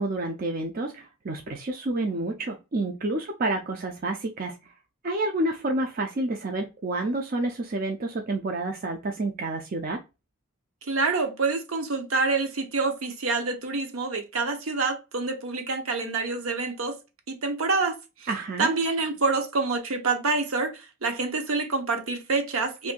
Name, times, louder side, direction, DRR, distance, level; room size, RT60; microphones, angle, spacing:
voice 1, 0.0-4.6 5.0-10.0 18.3-18.7, right 2 dB, 40° right, 0.5 m, -29 dB
voice 2, 10.8-17.0 17.3-18.3 18.6-22.9, right 3 dB, 70° right, 0.8 m, -27 dB
2.7 x 2.6 x 3.6 m
head